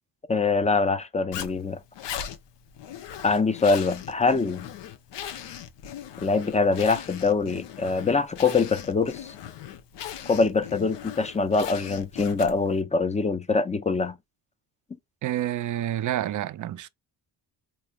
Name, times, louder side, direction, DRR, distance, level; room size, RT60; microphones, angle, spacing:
voice 1, 0.3-1.8 3.2-4.7 6.2-9.3 10.3-14.2, left 4 dB, 15° left, 0.5 m, -24 dB
Zipper (clothing), 1.3-12.8, left 9 dB, 70° left, 0.8 m, -39 dB
voice 2, 15.2-16.9, right 12 dB, 45° right, 0.5 m, -28 dB
4.2 x 3.0 x 2.3 m
cardioid pair, 90°, 43 cm